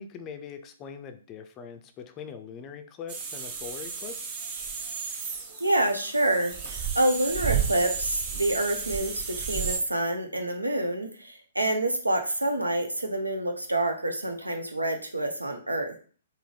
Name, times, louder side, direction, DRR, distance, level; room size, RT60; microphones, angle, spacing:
voice 1, 0.0-4.4, left 6 dB, 25° left, 8 dB, 0.4 m, -42 dB
sound 1, 3.1-9.8, right 7 dB, 30° right, 0.6 m, -33 dB
voice 2, 5.6-16.0, right 1 dB, 85° right, 5 dB, 0.6 m, -27 dB
3.5 x 2.1 x 4.0 m, 0.41 s
figure-of-eight pair, 120°, 0 cm